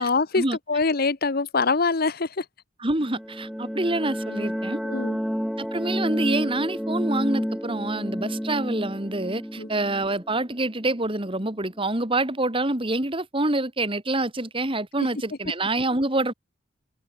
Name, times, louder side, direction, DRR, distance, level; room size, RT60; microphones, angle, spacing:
voice 1, 0.0-2.4 4.8-5.2 9.6-9.7, left 4 dB, 50° left, 0.9 m, -24 dB
voice 2, 2.8-4.8 5.6-16.3, right 2 dB, 25° right, 2.4 m, -26 dB
sound 1, 3.0-11.6, equal, ahead, 2.0 m, -30 dB
open air
head